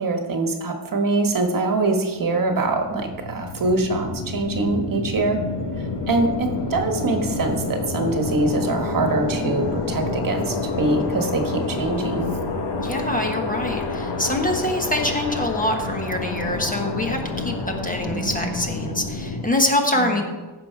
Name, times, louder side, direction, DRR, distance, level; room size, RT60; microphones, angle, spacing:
voice 1, 0.0-5.4 5.8-12.3 18.1-18.6 19.9-20.2, right 2 dB, 45° right, 4 dB, 1.4 m, -24 dB
sound 1, 2.3-19.4, left 3 dB, 70° left, 1.5 m, -28 dB
voice 2, 12.8-20.2, left 1 dB, 20° left, 2 dB, 1.3 m, -24 dB
15.5 x 6.6 x 4.7 m, 1.3 s
wide cardioid pair, 135°, 44 cm